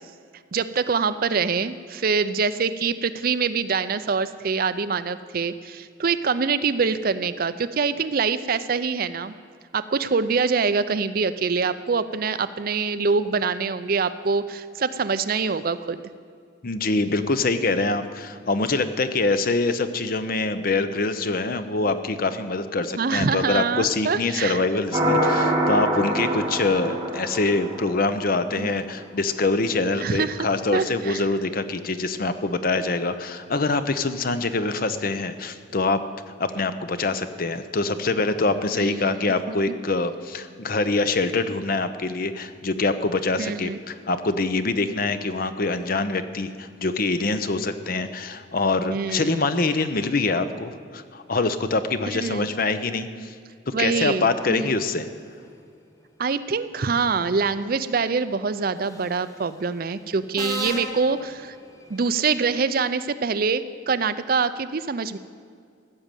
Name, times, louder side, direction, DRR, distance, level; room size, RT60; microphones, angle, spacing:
voice 1, 0.5-9.3 9.7-16.0 23.0-24.6 28.6-28.8 30.0-30.4 30.7-31.2 38.7-39.5 43.4-43.8 48.9-49.4 52.1-52.5 53.7-54.7 56.2-61.6 61.9-65.2, right 5 dB, 50° right, 13 dB, 0.5 m, -25 dB
voice 2, 16.6-36.0 36.3-53.3 53.7-55.1, left 3 dB, 50° left, 10 dB, 0.7 m, -25 dB
sound 1, 24.9-28.3, right 1 dB, 20° right, 2.6 m, -24 dB
Subway metro underground, 58.9-59.2 60.4-62.1, left 1 dB, 15° left, 1.0 m, -35 dB
15.0 x 6.5 x 9.0 m, 2.2 s
head